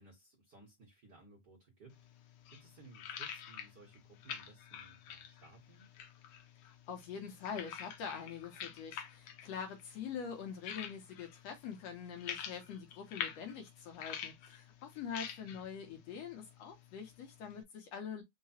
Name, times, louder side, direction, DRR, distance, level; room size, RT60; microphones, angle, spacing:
voice 1, 0.0-5.9 15.4-16.0, right 3 dB, 55° right, 1.2 m, -60 dB
sound 1, 1.9-17.6, left 8 dB, 85° left, 1.2 m, -48 dB
voice 2, 6.7-18.2, left 7 dB, 70° left, 1.9 m, -44 dB
4.8 x 2.2 x 4.1 m
omnidirectional pair, 3.4 m